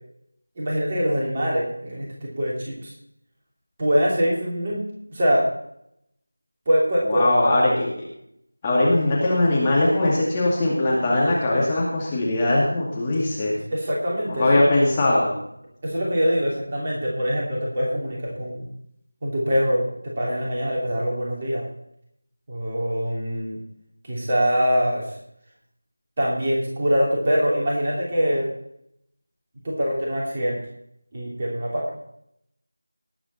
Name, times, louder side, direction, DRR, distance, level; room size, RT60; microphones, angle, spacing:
voice 1, 0.6-2.9 3.8-4.8 5.1-5.5 6.7-7.4 9.0-9.1 13.7-14.7 15.8-18.7 19.2-19.9 20.2-21.7 22.5-23.6 24.0-25.1 26.2-28.5 29.6-30.6 31.1-31.9, equal, 25° right, -4 dB, 2.9 m, -23 dB
voice 2, 7.1-7.9 8.6-13.6 14.3-15.4, left 1 dB, 15° left, -6 dB, 2.3 m, -20 dB
19.0 x 8.5 x 4.2 m, 0.75 s
figure-of-eight pair, 170°, 0 cm